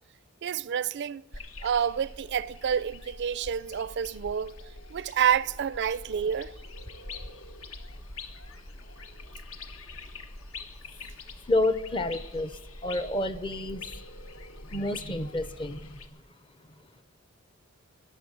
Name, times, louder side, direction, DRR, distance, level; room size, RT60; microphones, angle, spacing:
voice 1, 0.4-1.2 1.6-4.5 4.9-6.5, right 8 dB, 55° right, 0.4 m, -28 dB
sound 1, 1.3-16.1, left 3 dB, 75° left, 1.3 m, -44 dB
voice 2, 11.4-13.8 14.7-16.0, left 1 dB, 25° left, 0.6 m, -29 dB
20.5 x 7.3 x 7.9 m
head